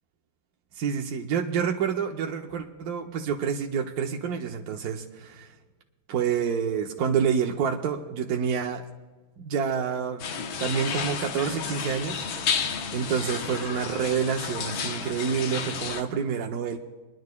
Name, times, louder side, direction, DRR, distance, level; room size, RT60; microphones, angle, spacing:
voice 1, 0.8-5.5 6.1-8.8 9.4-10.3 10.6-12.2 12.9-16.8, right 7 dB, 65° right, 2 dB, 1.0 m, -28 dB
sound 1, 10.2-16.0, left 6 dB, 90° left, 1.7 m, -31 dB
27.5 x 10.5 x 2.2 m, 1.3 s
omnidirectional pair, 2.1 m